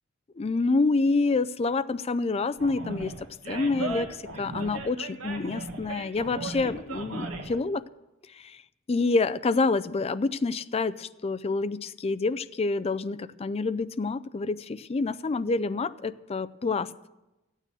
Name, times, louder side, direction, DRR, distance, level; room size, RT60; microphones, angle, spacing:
voice 1, 0.4-3.1 3.5-4.1 4.4-7.8 8.4-8.6 8.9-16.9, left 3 dB, 30° left, 13 dB, 0.4 m, -27 dB
Animal, 2.6-7.6, right 2 dB, 85° right, 1.6 m, -37 dB
14.5 x 9.2 x 6.2 m, 1.0 s
head